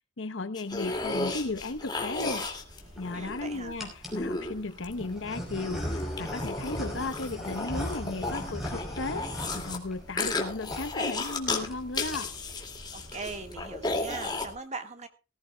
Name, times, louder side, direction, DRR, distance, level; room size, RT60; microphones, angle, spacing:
voice 1, 0.2-2.4 3.0-9.2 9.5-12.3, left 3 dB, 75° left, 12 dB, 0.9 m, -35 dB
sound 1, 0.6-3.5 4.1-5.1 5.7-9.8 10.2-11.7 11.9-14.4, left 3 dB, 25° left, 2.3 m, -34 dB
sound 2, 0.7-14.5, equal, 65° right, 6.9 m, -49 dB
sound 3, 1.9-2.1 2.8-3.3 3.8-4.2 5.0-10.4 10.7-10.9 11.2-11.3 11.5-11.7 12.0-12.5, equal, ahead, 4.9 m, -38 dB
voice 2, 3.1-3.8 12.9-15.1, right 3 dB, 35° right, 7 dB, 1.6 m, -40 dB
19.0 x 15.0 x 2.3 m, 0.32 s
head